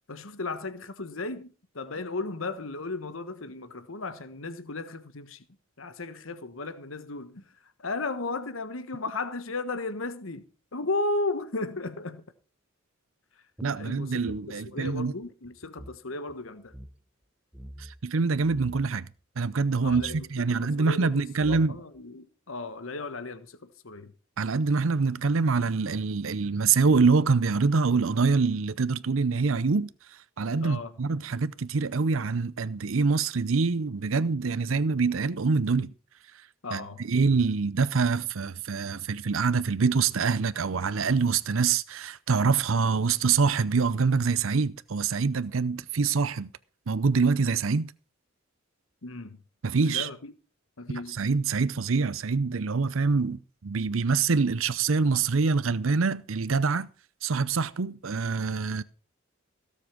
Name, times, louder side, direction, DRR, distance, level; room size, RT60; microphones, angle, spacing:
voice 1, 0.1-5.4 5.8-7.4 7.8-10.5 10.7-12.2 13.8-16.7 19.8-24.1 30.6-30.9 36.6-37.0 49.0-49.4 49.8-50.3 50.8-51.2, left 3 dB, 75° left, 1.3 m, -35 dB
sound 1, 13.6-16.0 16.3-16.4 16.7-16.9 17.5-18.0 18.4-18.9 19.9-20.3 21.0-21.1 21.4-22.0, equal, 5° right, 0.9 m, -45 dB
voice 2, 13.6-15.1 17.8-19.1 19.4-21.8 24.4-35.9 36.7-46.5 46.9-47.9 49.6-50.1 51.1-56.9 57.2-58.8, right 4 dB, 75° right, 0.6 m, -25 dB
17.0 x 7.5 x 6.1 m
head